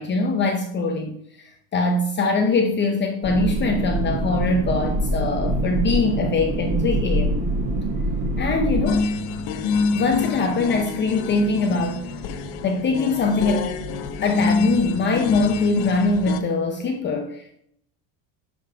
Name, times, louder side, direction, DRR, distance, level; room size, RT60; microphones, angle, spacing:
voice 1, 0.0-7.3 8.4-9.1 9.9-12.1 12.6-13.7 14.2-17.6, left 3 dB, 25° left, 4 dB, 0.7 m, -23 dB
sound 1, 3.2-8.9, right 1 dB, 15° right, 2.1 m, -24 dB
sound 2, 4.0-15.6, right 3 dB, 65° right, 2.2 m, -40 dB
sound 3, 8.9-16.4, left 4 dB, 60° left, 1.0 m, -26 dB
11.5 x 5.4 x 5.0 m, 0.70 s
cardioid pair, 175°, 44 cm